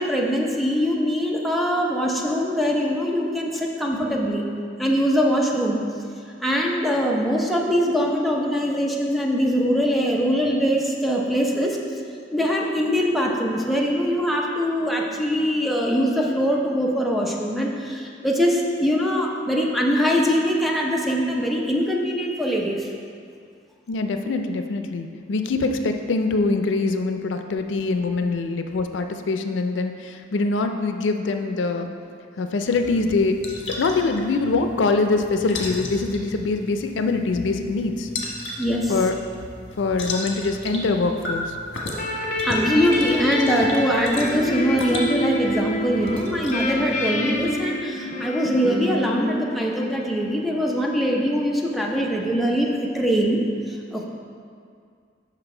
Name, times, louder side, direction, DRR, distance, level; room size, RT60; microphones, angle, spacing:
voice 1, 0.0-4.5 4.8-5.8 6.4-11.8 12.3-22.9 38.6-38.9 42.4-53.4 53.7-54.1, equal, ahead, -2 dB, 0.7 m, -22 dB
voice 2, 23.9-31.9 32.4-33.4 33.8-38.1 38.9-39.1 39.8-41.6, left 3 dB, 85° left, 6 dB, 0.4 m, -23 dB
sound 1, 32.7-47.6, left 1 dB, 70° left, 1.1 m, -35 dB
sound 2, 41.9-50.4, left 1 dB, 45° left, 0.7 m, -28 dB
6.0 x 5.8 x 4.4 m, 2.3 s
head